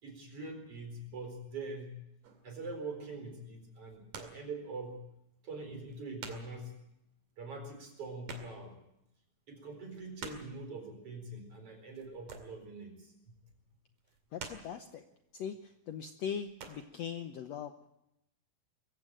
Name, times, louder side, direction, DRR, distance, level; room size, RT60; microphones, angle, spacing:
voice 1, 0.0-2.0 2.4-5.0 5.4-6.7 7.4-8.8 9.5-13.1, right 3 dB, 40° right, 5 dB, 4.9 m, -43 dB
sound 1, 2.2-2.6 3.7-4.5 4.9-5.0 5.6-5.7 5.9-6.6 6.9-7.0 7.3-7.4 7.6-8.9 9.2-9.3 9.7-10.6 11.9-12.7 13.0-13.4 14.0-14.9 15.6-15.8 16.1-16.9, right 5 dB, 60° right, 3.7 m, -48 dB
voice 2, 14.3-15.0 15.3-17.9, left 8 dB, 85° left, 7 dB, 1.4 m, -40 dB
22.5 x 15.5 x 8.8 m, 0.84 s
omnidirectional pair, 4.3 m